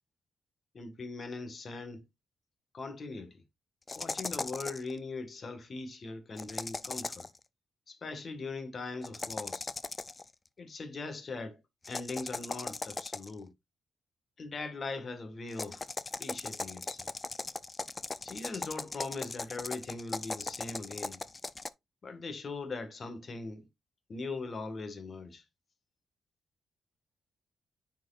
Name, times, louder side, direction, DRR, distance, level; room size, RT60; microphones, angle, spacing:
voice 1, 0.7-2.0 2.7-3.3 4.0-7.3 7.9-9.7 10.6-11.6 11.9-13.5 14.4-15.8 16.2-17.1 18.2-21.2 22.0-23.7 24.1-25.4, left 3 dB, 45° left, 1.6 m, -40 dB
sound 1, 3.9-4.9 6.4-7.4 9.0-10.3 11.8-13.4 15.5-21.7, left 3 dB, 30° left, 0.4 m, -38 dB
9.8 x 4.7 x 2.4 m
cardioid pair, 90°, 0 cm